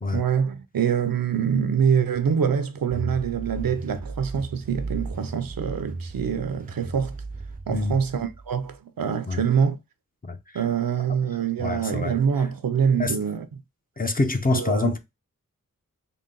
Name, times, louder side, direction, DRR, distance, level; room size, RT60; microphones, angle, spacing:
voice 1, 0.1-7.2 7.7-9.8 10.5-13.5 14.5-14.9, right 7 dB, 80° right, 0.6 m, -25 dB
sound 1, 2.9-8.8, right 3 dB, 25° right, 0.4 m, -35 dB
voice 2, 11.6-12.2 13.0-13.1 14.0-15.0, left 3 dB, 25° left, 0.6 m, -25 dB
3.8 x 2.2 x 3.7 m
wide cardioid pair, 65°, 34 cm